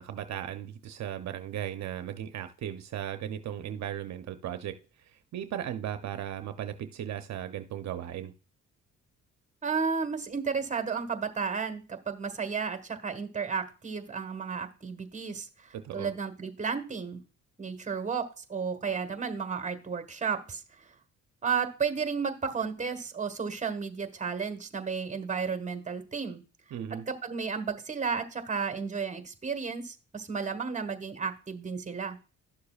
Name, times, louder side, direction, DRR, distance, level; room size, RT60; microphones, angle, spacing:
voice 1, 0.0-8.3 15.7-16.1 26.7-27.1, right 10 dB, 65° right, 0.7 m, -37 dB
voice 2, 9.6-17.2 17.6-20.6 21.4-26.4 27.1-32.2, right 5 dB, 25° right, 1.4 m, -33 dB
12.0 x 6.7 x 2.4 m
cardioid pair, 90°, 30 cm